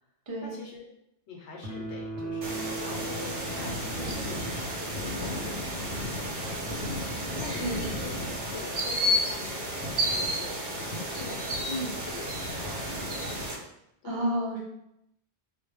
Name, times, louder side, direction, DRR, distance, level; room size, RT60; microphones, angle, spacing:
voice 1, 0.4-0.9 1.3-6.8 7.4-11.4 12.0-12.8 14.0-14.3, left 4 dB, 80° left, -1 dB, 0.9 m, -44 dB
sound 1, 1.6-5.2, right 3 dB, 85° right, 0.9 m, -38 dB
sound 2, 2.4-13.5, equal, 55° right, 0.9 m, -32 dB
voice 2, 7.4-7.8 11.7-12.0 14.0-14.6, right 1 dB, 35° right, -3 dB, 0.4 m, -31 dB
2.2 x 2.0 x 3.0 m, 0.79 s
omnidirectional pair, 1.1 m